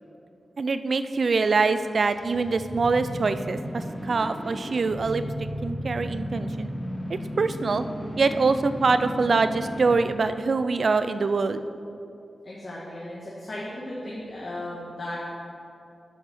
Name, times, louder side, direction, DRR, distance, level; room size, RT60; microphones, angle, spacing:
voice 1, 0.6-6.7 7.1-7.8 8.2-11.6, right 4 dB, 55° right, 11 dB, 0.4 m, -24 dB
sound 1, 1.6-10.2, equal, 15° left, 1.0 m, -35 dB
voice 2, 12.4-15.2, left 1 dB, 45° left, -6 dB, 1.6 m, -36 dB
9.2 x 5.5 x 6.0 m, 2.6 s
wide cardioid pair, 125°, 0 cm